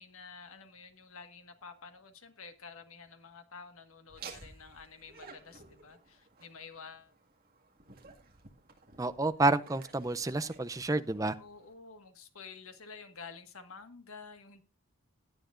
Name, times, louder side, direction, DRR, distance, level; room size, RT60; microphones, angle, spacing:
voice 1, 0.0-7.1 11.4-14.6, left 5 dB, 75° left, 1.5 m, -50 dB
Laughter, 4.1-11.7, right 5 dB, 40° right, 1.9 m, -54 dB
voice 2, 9.0-11.3, right 2 dB, 15° right, 0.4 m, -29 dB
16.5 x 10.0 x 2.5 m
head